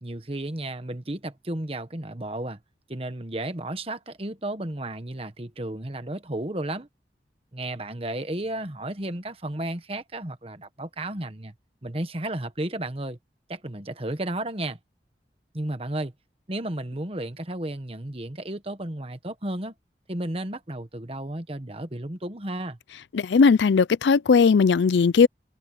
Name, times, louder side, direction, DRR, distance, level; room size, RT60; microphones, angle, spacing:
voice 1, 0.0-2.6 2.9-6.9 7.5-11.5 11.8-13.2 13.5-14.8 15.5-16.1 16.5-19.7 20.1-22.8, right 1 dB, 35° right, 1.3 m, -33 dB
voice 2, 23.1-25.3, left 5 dB, 85° left, 0.4 m, -18 dB
head